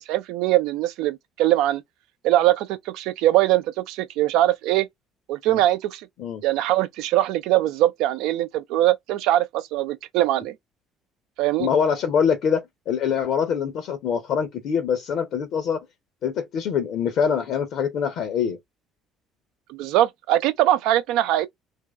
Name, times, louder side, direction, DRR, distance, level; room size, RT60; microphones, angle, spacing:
voice 1, 0.1-1.8 2.2-4.9 5.3-6.0 6.4-10.5 11.4-11.7 19.7-21.5, right 14 dB, 70° right, 0.6 m, -22 dB
voice 2, 11.6-15.9 16.2-18.6, left 7 dB, 60° left, 0.8 m, -24 dB
3.0 x 2.7 x 3.5 m
hypercardioid pair, 55°, 0 cm